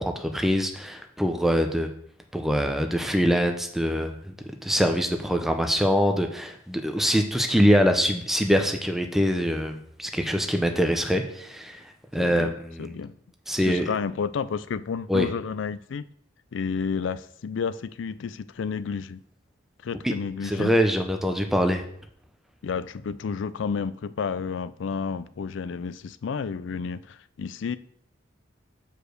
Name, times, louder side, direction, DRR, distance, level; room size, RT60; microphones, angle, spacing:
voice 1, 0.0-1.9 2.3-4.3 4.6-11.8 12.1-13.0 13.5-13.9 15.1-15.3 20.0-20.1 20.4-21.8, equal, ahead, 5 dB, 0.6 m, -24 dB
voice 2, 12.2-12.5 12.8-13.1 13.6-16.1 16.5-19.2 19.8-20.7 22.6-27.8, left 6 dB, 65° left, 16 dB, 0.4 m, -31 dB
6.8 x 4.9 x 6.4 m, 0.68 s
head